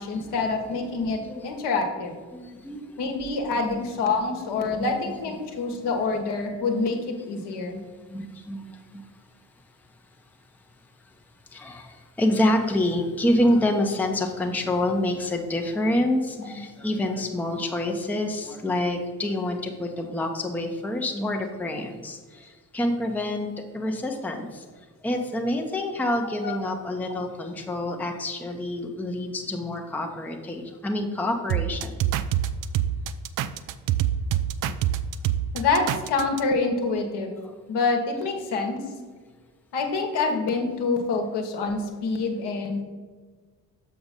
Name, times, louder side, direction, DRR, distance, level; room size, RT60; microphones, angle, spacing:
voice 1, 0.0-2.1 3.0-7.8 16.4-16.6 26.4-26.5 35.5-37.3 37.7-38.8 39.7-42.8, left 3 dB, 55° left, 3 dB, 1.3 m, -26 dB
voice 2, 2.3-2.8 3.5-3.8 4.8-4.9 8.1-8.6 8.9-9.0 11.5-22.5 22.7-23.5 23.7-24.5 25.0-31.9, left 1 dB, 5° left, 2 dB, 0.8 m, -27 dB
sound 1, 31.5-36.4, right 11 dB, 45° right, 0.4 m, -25 dB
6.8 x 5.2 x 4.1 m, 1.4 s
figure-of-eight pair, 40°, 49 cm